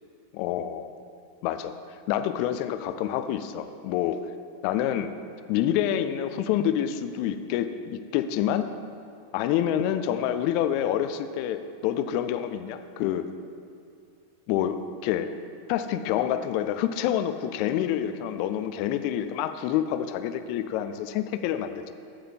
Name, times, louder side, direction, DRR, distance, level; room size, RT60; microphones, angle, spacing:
voice 1, 0.3-0.9 1.4-1.7 2.1-4.2 4.6-5.1 5.5-8.7 9.3-13.3 14.5-15.3 15.7-21.9, left 10 dB, 45° left, 10 dB, 0.5 m, -27 dB
14.0 x 5.0 x 4.4 m, 2.5 s
figure-of-eight pair, 90°, 0 cm